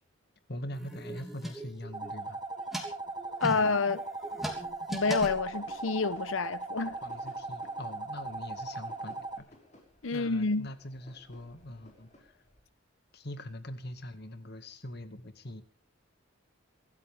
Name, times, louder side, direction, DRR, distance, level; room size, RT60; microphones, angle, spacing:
voice 1, 0.5-2.4 3.4-3.7 7.0-9.5 10.1-12.4 13.1-15.6, left 1 dB, 50° left, 2.0 m, -43 dB
sound 1, 0.7-2.1 2.5-6.0, right 1 dB, ahead, 3.1 m, -39 dB
sound 2, 1.9-9.4, right 3 dB, 20° right, 1.2 m, -39 dB
voice 2, 3.4-4.0 4.9-7.0 10.0-10.7, left 4 dB, 75° left, 0.9 m, -28 dB
sound 3, 4.9-12.6, left 1 dB, 35° left, 5.6 m, -58 dB
25.5 x 13.5 x 3.6 m
head